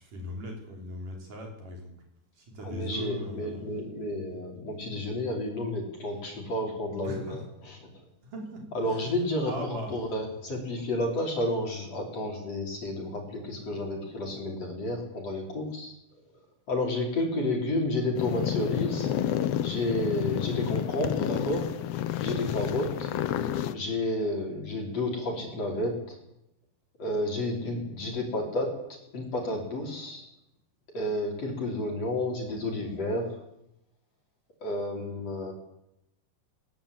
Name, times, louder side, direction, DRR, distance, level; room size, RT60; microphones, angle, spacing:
voice 1, 0.0-1.9 2.3-3.6 7.0-7.4 8.2-9.9, equal, 60° right, 1 dB, 6.4 m, -39 dB
voice 2, 2.6-8.0 8.7-15.9 16.7-19.1 19.6-21.7 22.2-23.1 23.7-26.2 27.0-28.8 29.1-30.2 30.9-33.3 34.6-35.5, left 1 dB, 40° left, 0 dB, 6.2 m, -31 dB
sound 1, 18.1-23.7, left 11 dB, 85° left, 1.4 m, -30 dB
21.0 x 19.0 x 8.9 m, 0.81 s
omnidirectional pair, 4.3 m